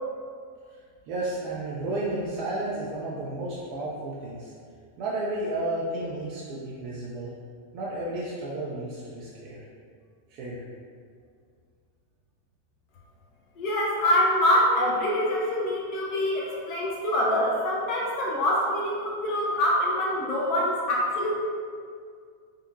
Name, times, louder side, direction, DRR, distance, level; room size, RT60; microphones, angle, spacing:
voice 1, 1.1-4.5 5.0-7.3 7.7-9.6 10.3-10.6, right 1 dB, 45° right, -6 dB, 0.5 m, -32 dB
voice 2, 13.6-21.3, left 1 dB, 40° left, -4 dB, 0.8 m, -25 dB
3.5 x 2.6 x 2.6 m, 2.1 s
figure-of-eight pair, 90°, 0 cm